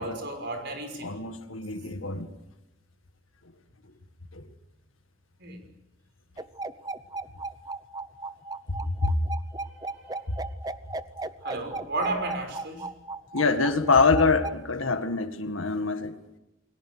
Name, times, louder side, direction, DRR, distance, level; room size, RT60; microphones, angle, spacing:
voice 1, 0.0-1.1 5.4-5.6 10.0-10.2 11.4-12.9, right 2 dB, 60° right, 6.0 m, -33 dB
voice 2, 1.0-2.3 4.3-4.5 8.8-9.2 13.3-16.2, left 4 dB, 85° left, 1.9 m, -25 dB
sound 1, 6.4-14.5, right 3 dB, 20° right, 0.8 m, -35 dB
29.5 x 22.5 x 6.4 m
head